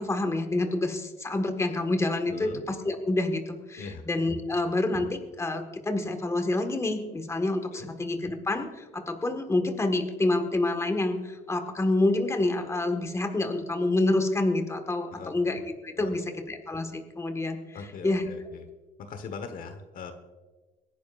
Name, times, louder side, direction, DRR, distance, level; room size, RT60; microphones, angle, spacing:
voice 1, 0.0-16.2 16.5-17.8 18.0-18.3, left 2 dB, 15° left, 6 dB, 1.6 m, -28 dB
voice 2, 2.3-2.6 3.8-4.0 7.7-7.9 15.1-15.4 16.0-16.4 17.7-18.7 19.0-20.1, left 5 dB, 55° left, 8 dB, 1.3 m, -41 dB
25.5 x 10.5 x 2.5 m, 1.3 s
cardioid pair, 110°, 17 cm